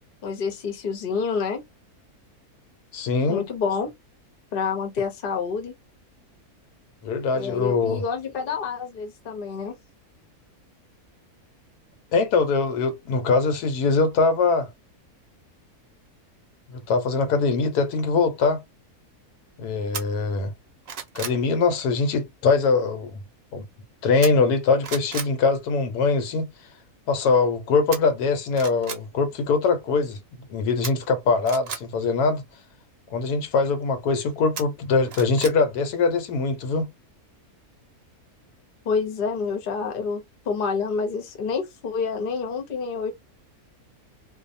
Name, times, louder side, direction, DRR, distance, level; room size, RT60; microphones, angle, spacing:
voice 1, 0.2-1.6 3.3-3.9 4.5-5.7 7.3-9.7 38.8-43.1, left 5 dB, 45° left, 0.8 m, -28 dB
voice 2, 2.9-3.5 7.0-8.0 12.1-14.7 16.7-18.6 19.6-20.5 21.1-23.1 23.5-23.6 24.0-26.5 27.1-30.2 30.5-32.4 33.1-36.9, left 4 dB, 80° left, 1.2 m, -22 dB
sound 1, 19.9-20.0 20.5-21.4 24.2-24.6 24.8-25.3 27.9-28.0 28.5-29.0 30.8-31.8 34.6-35.6 35.9-36.0, right 6 dB, 55° right, 0.7 m, -34 dB
2.6 x 2.2 x 2.5 m
omnidirectional pair, 1.6 m